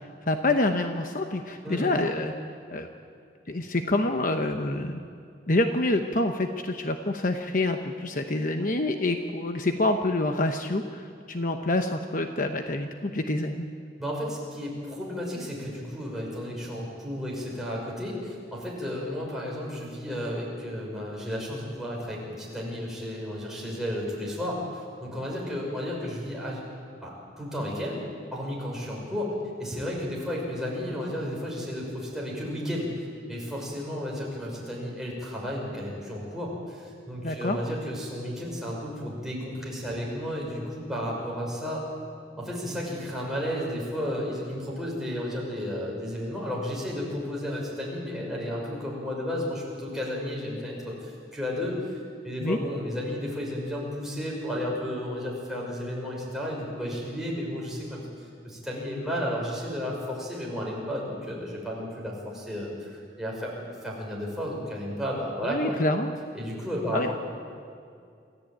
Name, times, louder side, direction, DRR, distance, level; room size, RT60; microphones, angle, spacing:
voice 1, 0.3-2.3 2.7-2.9 3.5-5.0 5.5-13.7 37.2-37.6 52.4-52.6 65.4-66.1 66.9-67.1, left 2 dB, 50° left, 5 dB, 1.0 m, -27 dB
voice 2, 1.6-2.0 14.0-26.6 27.0-28.0 28.3-29.3 29.6-41.9 42.4-51.7 52.2-58.0 58.4-65.8 66.3-67.1, equal, 5° right, -4 dB, 5.9 m, -33 dB
27.5 x 14.5 x 8.8 m, 2.3 s
head